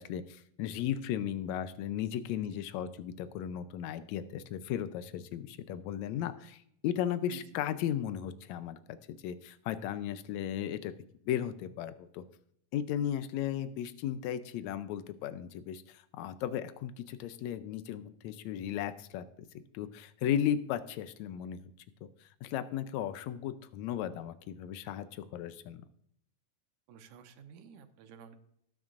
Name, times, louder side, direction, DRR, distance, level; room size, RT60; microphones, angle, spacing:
voice 1, 0.0-10.9 11.2-12.2 12.7-19.2 19.7-21.7 22.0-25.8, left 10 dB, 85° left, 11 dB, 1.6 m, -36 dB
voice 2, 26.9-28.4, right 7 dB, 70° right, 7 dB, 2.3 m, -52 dB
18.5 x 9.1 x 2.5 m, 0.70 s
omnidirectional pair, 4.0 m